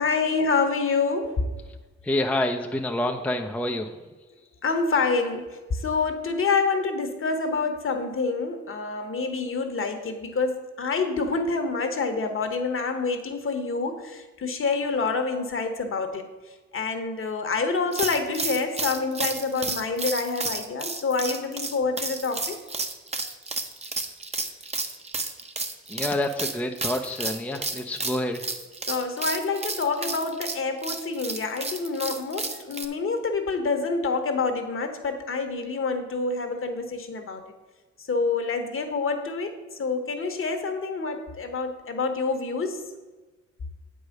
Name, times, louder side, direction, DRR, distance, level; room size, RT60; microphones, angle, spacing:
voice 1, 0.0-1.5 4.6-22.6 27.5-27.6 28.9-37.4 38.0-42.9, left 4 dB, 45° left, 7 dB, 1.2 m, -27 dB
voice 2, 2.0-4.0 25.9-28.5, left 1 dB, 5° left, 3 dB, 0.6 m, -28 dB
sound 1, 17.9-32.9, right 3 dB, 20° right, 0.8 m, -32 dB
8.0 x 4.9 x 6.5 m, 1.2 s
cardioid pair, 90°, 30 cm